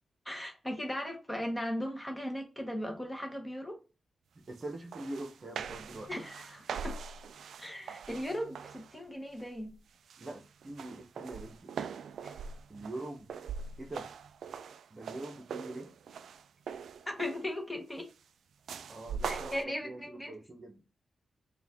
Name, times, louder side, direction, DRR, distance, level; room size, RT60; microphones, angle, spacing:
voice 1, 0.2-3.8 6.1-7.0 7.6-9.7 12.2-12.3 17.1-18.1 19.2-20.4, left 1 dB, 10° left, 1.0 m, -37 dB
voice 2, 4.3-6.1 10.2-11.7 12.7-13.3 13.8-14.1 14.9-15.9 18.9-20.8, right 2 dB, 30° right, 1.0 m, -43 dB
sound 1, 4.6-4.7 4.9-9.0 9.4-9.8 10.1-17.6 18.7-19.6, right 6 dB, 80° right, 0.3 m, -42 dB
4.8 x 2.5 x 3.6 m
wide cardioid pair, 125°, 0 cm